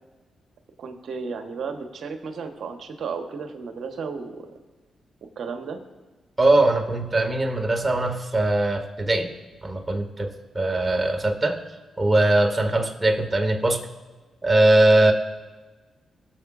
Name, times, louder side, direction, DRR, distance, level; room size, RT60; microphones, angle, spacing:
voice 1, 0.8-4.5 5.4-5.8, right 5 dB, 65° right, 6 dB, 1.2 m, -33 dB
voice 2, 6.4-10.3 10.5-11.6 12.0-13.8 14.4-15.1, right 2 dB, 25° right, 3 dB, 2.0 m, -21 dB
22.0 x 7.5 x 2.6 m, 1.3 s
hypercardioid pair, 40°, 0 cm